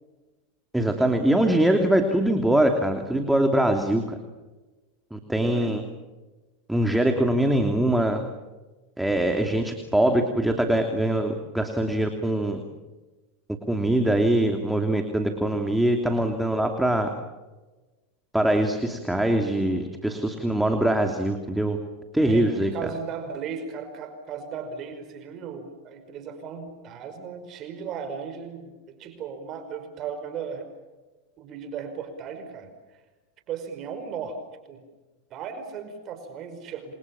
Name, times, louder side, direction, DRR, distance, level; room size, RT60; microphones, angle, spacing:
voice 1, 0.7-4.2 5.1-5.8 6.7-8.3 9.0-12.6 13.7-17.1 18.3-21.8 22.1-22.7, right 1 dB, 5° right, 4 dB, 2.9 m, -23 dB
voice 2, 5.4-5.7 22.2-30.7 31.4-33.0 33.5-34.4 34.7-34.8 35.3-36.9, right 6 dB, 40° right, 7 dB, 5.3 m, -36 dB
28.5 x 25.0 x 7.3 m, 1.2 s
supercardioid pair, 120°, 0 cm